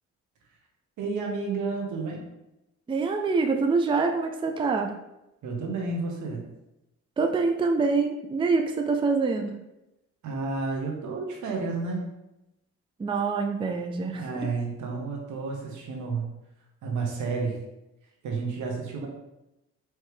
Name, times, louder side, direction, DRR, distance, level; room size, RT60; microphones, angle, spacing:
voice 1, 1.0-2.3 5.4-6.4 10.2-12.1 14.1-16.2 16.8-17.6 18.2-19.1, right 4 dB, 75° right, 1 dB, 1.2 m, -31 dB
voice 2, 2.9-5.0 7.2-9.5 13.0-14.5, right 4 dB, 15° right, 4 dB, 0.4 m, -25 dB
4.7 x 3.2 x 3.2 m, 0.91 s
cardioid pair, 90°, 30 cm